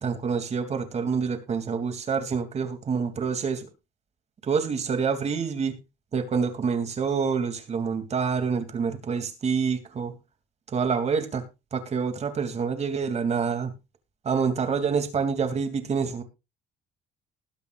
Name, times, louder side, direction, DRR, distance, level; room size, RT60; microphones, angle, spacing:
voice 1, 0.0-3.7 4.4-5.8 6.1-10.1 10.7-11.4 11.7-13.7 14.2-16.2, right 5 dB, 40° right, 7 dB, 3.0 m, -27 dB
20.0 x 8.4 x 2.6 m, 0.27 s
cardioid pair, 110°, 17 cm